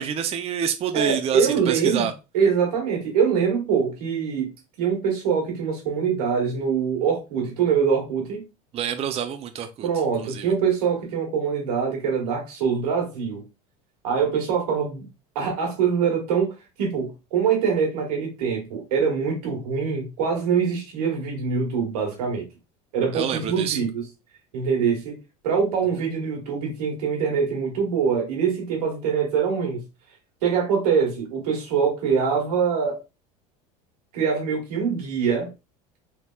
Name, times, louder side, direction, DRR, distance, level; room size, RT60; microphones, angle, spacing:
voice 1, 0.0-2.1 8.7-9.9 10.2-10.5 23.1-23.8, right 8 dB, 35° right, 0.4 m, -27 dB
voice 2, 0.9-2.1 2.3-4.5 4.8-8.4 9.8-13.4 14.0-15.1 15.3-22.4 22.9-24.0 24.5-25.2 25.4-29.8 30.4-33.0 34.1-35.5, right 6 dB, 90° right, 1.5 m, -24 dB
3.4 x 2.8 x 2.2 m
supercardioid pair, 100°, 19 cm